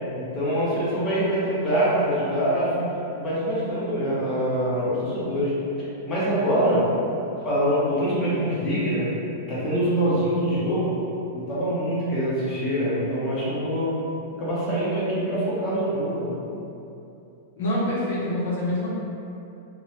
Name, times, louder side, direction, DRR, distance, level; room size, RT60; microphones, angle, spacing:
voice 1, 0.2-2.7 3.2-5.5 6.0-6.8 7.4-9.1 9.5-11.0 11.3-13.9 14.4-16.3, equal, 15° left, -10 dB, 0.7 m, -24 dB
voice 2, 17.6-18.9, left 1 dB, 70° left, -7 dB, 0.7 m, -25 dB
3.1 x 2.1 x 2.8 m, 2.8 s
supercardioid pair, 175°, 0 cm